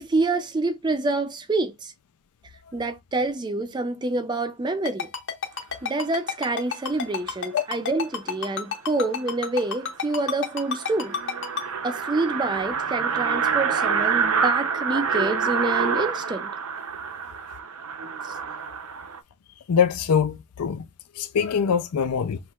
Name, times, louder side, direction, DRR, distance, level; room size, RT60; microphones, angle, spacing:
voice 1, 0.0-1.9 2.7-5.1 5.8-11.2 11.8-16.5 18.2-18.4, right 2 dB, 20° right, 0.4 m, -27 dB
Ringtone, 4.9-11.6, left 6 dB, 55° left, 1.3 m, -29 dB
sound 1, 9.3-9.4 9.7-9.8 10.1-10.2 10.5-19.2, right 6 dB, 75° right, 0.6 m, -27 dB
voice 2, 19.7-20.8 21.2-22.4, left 7 dB, 85° left, 0.4 m, -23 dB
5.9 x 3.1 x 2.3 m
head